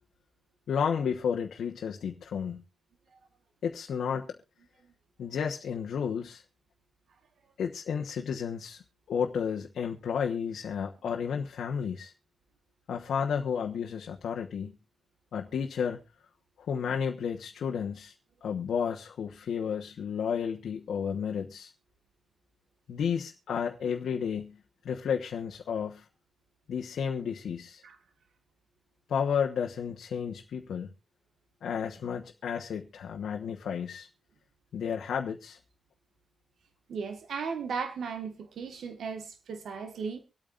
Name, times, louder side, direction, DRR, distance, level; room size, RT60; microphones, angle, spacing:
voice 1, 0.7-2.6 3.6-4.4 5.2-6.4 7.6-8.8 9.1-12.1 12.9-14.7 15.3-16.0 16.6-18.1 18.4-21.7 22.9-24.6 24.8-26.0 26.7-27.8 29.1-30.9 31.6-34.1 34.7-35.6, left 7 dB, 80° left, 1.2 m, -32 dB
voice 2, 36.9-40.2, right 5 dB, 80° right, 1.6 m, -36 dB
25.0 x 8.9 x 2.5 m
wide cardioid pair, 155°, 0 cm